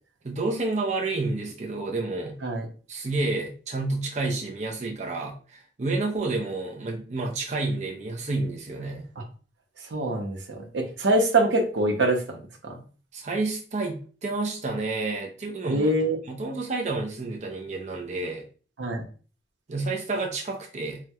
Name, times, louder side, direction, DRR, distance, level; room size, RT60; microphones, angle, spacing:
voice 1, 0.2-2.4 2.9-9.1 13.1-15.9 16.2-18.5 19.7-21.0, right 3 dB, 40° right, 0 dB, 0.5 m, -30 dB
voice 2, 9.9-12.4 12.6-12.8 15.7-16.2 18.8-19.0, right 2 dB, 85° right, 2 dB, 0.7 m, -24 dB
4.2 x 2.1 x 2.3 m, 0.39 s
head